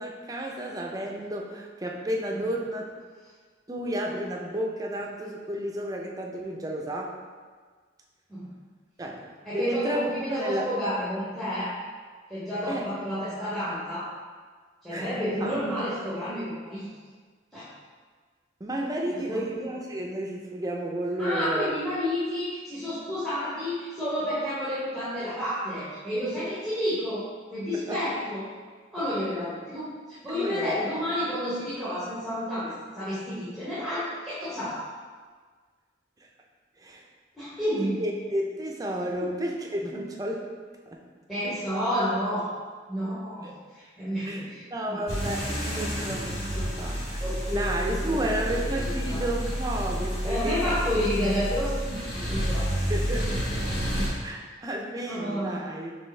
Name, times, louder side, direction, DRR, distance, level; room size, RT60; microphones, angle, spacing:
voice 1, 0.0-2.8 3.7-7.2 9.0-9.2 9.5-10.7 12.7-12.9 14.9-15.1 15.4-15.6 18.6-21.7 27.7-28.0 30.3-31.0 36.8-37.0 37.8-40.5 40.9-41.0 43.4-43.5 44.2-47.2 47.5-50.8 52.9-53.3 54.2-55.9, right 1 dB, 20° right, 0 dB, 0.4 m, -32 dB
voice 2, 9.4-11.7 12.3-14.1 14.8-16.9 17.5-17.7 19.3-19.5 21.2-27.2 27.5-28.4 28.9-34.9 37.4-38.0 39.2-39.3 41.3-42.5 42.9-43.5 43.7-44.6 44.9-45.0 45.6-46.6 47.2-49.2 50.2-52.7 55.1-55.6, equal, ahead, -11 dB, 0.8 m, -30 dB
sound 1, 45.1-54.1, equal, 55° left, 1.0 m, -30 dB
4.4 x 3.3 x 3.2 m, 1.5 s
head